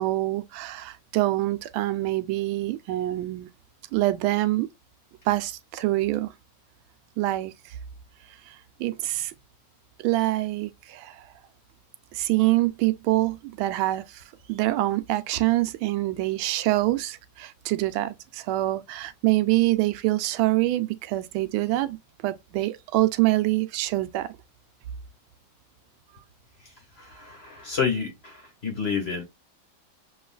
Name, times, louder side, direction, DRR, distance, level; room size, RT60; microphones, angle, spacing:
voice 1, 0.0-3.5 3.9-4.7 5.3-6.3 7.2-7.8 8.5-9.3 10.0-11.3 12.1-22.0 22.2-24.3, right 17 dB, 85° right, 1.4 m, -25 dB
voice 2, 27.0-28.4 28.6-29.2, left 6 dB, 35° left, 1.5 m, -29 dB
6.9 x 3.1 x 2.3 m
omnidirectional pair, 2.2 m